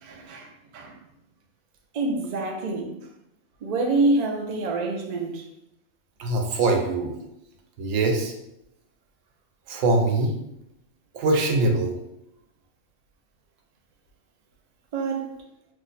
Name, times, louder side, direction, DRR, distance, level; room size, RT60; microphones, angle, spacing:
voice 1, 0.0-1.0 1.9-2.9 3.6-5.4 14.9-15.3, right 2 dB, 60° right, 0.4 m, -26 dB
voice 2, 6.2-7.1 7.8-8.3 9.7-10.3 11.1-11.9, right 2 dB, 85° right, 1.0 m, -22 dB
2.6 x 2.1 x 3.9 m
omnidirectional pair, 1.3 m